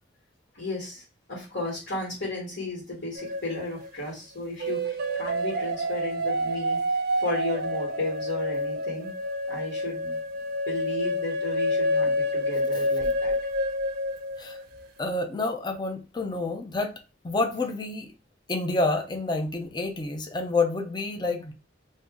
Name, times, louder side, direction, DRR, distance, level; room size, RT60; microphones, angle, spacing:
voice 1, 0.5-1.0 1.3-6.8 7.2-9.1 9.5-10.2 10.7-13.3, left 2 dB, 60° left, 1.7 m, -34 dB
sound 1, 3.2-3.9 4.6-14.6, equal, 55° right, 0.5 m, -28 dB
voice 2, 15.0-16.9 17.2-18.1 18.5-21.5, left 3 dB, 25° left, 0.4 m, -28 dB
2.6 x 2.5 x 3.6 m
head